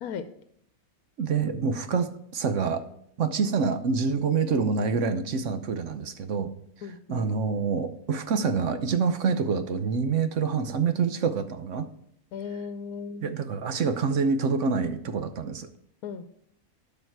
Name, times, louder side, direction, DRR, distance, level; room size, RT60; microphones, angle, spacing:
voice 1, 1.2-2.8 3.2-6.5 6.8-11.9 13.2-15.7, right 5 dB, 60° right, 10 dB, 1.1 m, -26 dB
voice 2, 6.8-7.2 12.3-13.4 16.0-16.3, left 6 dB, 85° left, 10 dB, 1.1 m, -36 dB
12.0 x 5.7 x 4.6 m, 0.70 s
omnidirectional pair, 1.5 m